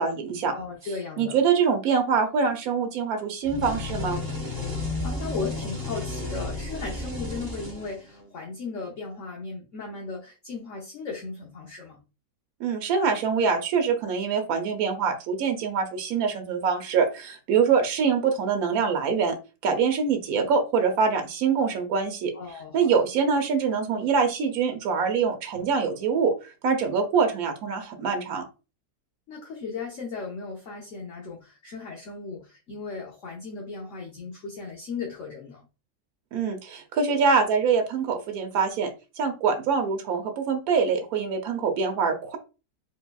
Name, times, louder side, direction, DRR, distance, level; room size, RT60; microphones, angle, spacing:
voice 1, 0.0-0.5 1.2-4.2 12.6-19.4 19.6-22.3 22.7-26.3 26.6-28.4 36.3-38.9 39.2-42.4, right 5 dB, 70° right, 5 dB, 1.3 m, -24 dB
voice 2, 0.5-1.4 5.0-12.0 22.3-23.1 29.3-35.6, left 4 dB, 55° left, -2 dB, 1.2 m, -36 dB
sound 1, 3.4-8.3, left 2 dB, 20° right, 0.8 m, -32 dB
4.4 x 3.6 x 2.3 m, 0.30 s
omnidirectional pair, 1.7 m